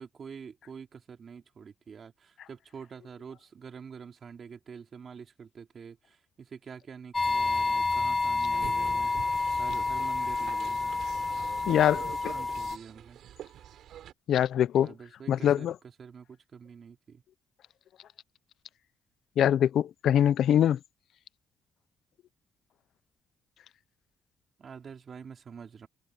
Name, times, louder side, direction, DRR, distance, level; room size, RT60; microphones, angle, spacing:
voice 1, 0.0-11.0 11.9-12.0 12.3-13.2 14.8-15.7 16.0-17.2 24.6-25.9, right 6 dB, 50° right, 3.9 m, -46 dB
sound 1, 7.1-12.8, left 3 dB, 20° left, 1.0 m, -29 dB
sound 2, 8.5-14.1, right 11 dB, 75° right, 4.9 m, -46 dB
voice 2, 11.7-12.0 14.3-14.9 15.3-15.7 19.4-20.8, left 10 dB, 70° left, 0.6 m, -23 dB
cardioid pair, 90°, 0 cm